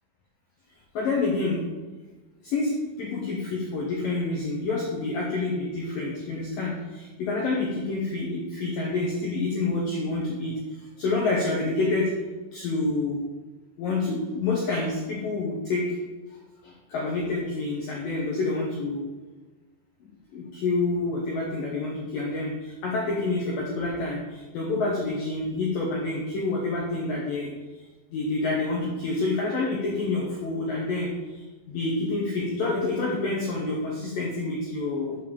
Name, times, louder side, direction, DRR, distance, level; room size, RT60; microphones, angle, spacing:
voice 1, 0.9-1.7 2.4-12.1 12.5-13.2 13.8-16.0 16.3-16.4 16.6-19.1 20.3-35.2, left 3 dB, 80° left, -2 dB, 2.0 m, -28 dB
7.6 x 5.1 x 7.1 m, 1.2 s
omnidirectional pair, 5.7 m